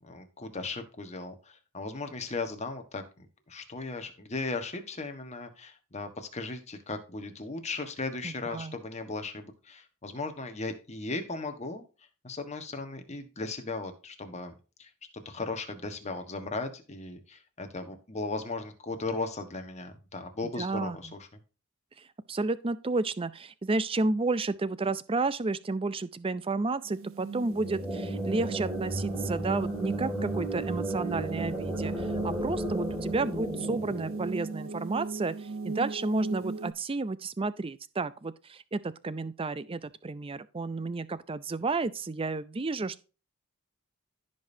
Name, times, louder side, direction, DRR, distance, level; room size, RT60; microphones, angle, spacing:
voice 1, 0.0-11.9 12.2-14.5 14.8-21.2, left 3 dB, 30° left, 1.4 m, -37 dB
voice 2, 8.2-8.8 20.6-21.1 22.0-43.1, right 3 dB, 25° right, 0.5 m, -32 dB
sound 1, 26.8-36.7, right 4 dB, 65° right, 0.7 m, -38 dB
sound 2, 27.4-35.0, right 1 dB, 5° right, 2.3 m, -34 dB
15.5 x 5.4 x 2.7 m
head